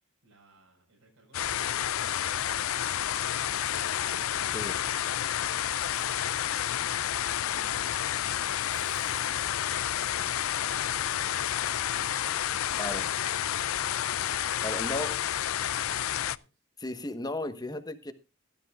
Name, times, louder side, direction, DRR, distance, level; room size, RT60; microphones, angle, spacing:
voice 1, 0.0-12.2 14.7-16.6, right 1 dB, 90° right, -4 dB, 5.1 m, -62 dB
sound 1, 1.3-16.4, left 10 dB, 75° left, 0.5 m, -30 dB
Writing, 5.6-6.4 8.7-10.6, right 6 dB, 30° right, 1.4 m, -56 dB
voice 2, 12.8-13.1 14.6-15.2 16.8-18.1, left 1 dB, 20° left, 10 dB, 1.2 m, -35 dB
16.5 x 12.0 x 2.4 m, 0.28 s
head